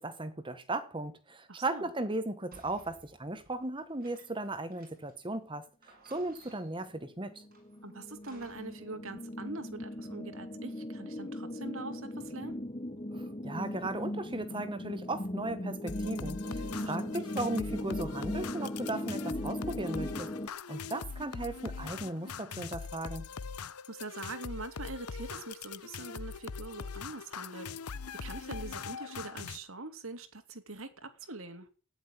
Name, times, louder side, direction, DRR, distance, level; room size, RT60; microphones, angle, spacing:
voice 1, 0.0-7.4 13.1-20.3 20.7-23.3, right 2 dB, 20° right, 1.3 m, -37 dB
voice 2, 1.5-1.9 7.8-12.6 16.7-17.2 23.9-27.7 28.2-31.7, right 3 dB, 65° right, 2.4 m, -43 dB
sound 1, 2.5-5.3 5.5-5.6 5.8-6.9 7.5-8.9, right 3 dB, 45° right, 6.8 m, -59 dB
sound 2, 7.0-20.5, left 1 dB, 25° left, 1.1 m, -38 dB
sound 3, 15.9-29.6, left 5 dB, 90° left, 0.8 m, -42 dB
14.0 x 10.0 x 9.8 m
head